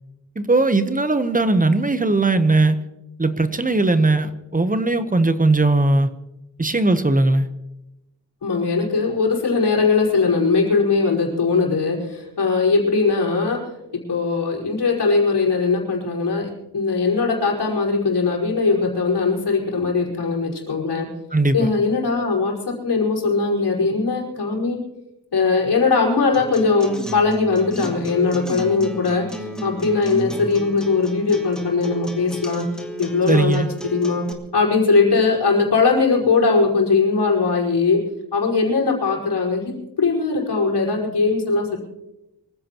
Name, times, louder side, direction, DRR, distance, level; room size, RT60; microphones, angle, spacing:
voice 1, 0.4-2.8 3.2-6.1 6.6-7.5 21.3-21.7 33.3-33.7, right 2 dB, 20° right, 11 dB, 0.9 m, -18 dB
voice 2, 8.4-13.6 13.9-21.1 21.5-24.8 25.3-32.7 33.0-34.3 34.5-38.0 38.3-41.8, left 4 dB, 70° left, -2 dB, 5.0 m, -20 dB
Acoustic guitar, 26.3-34.3, equal, ahead, 2.1 m, -33 dB
24.5 x 15.5 x 3.0 m, 0.93 s
wide cardioid pair, 140°, 41 cm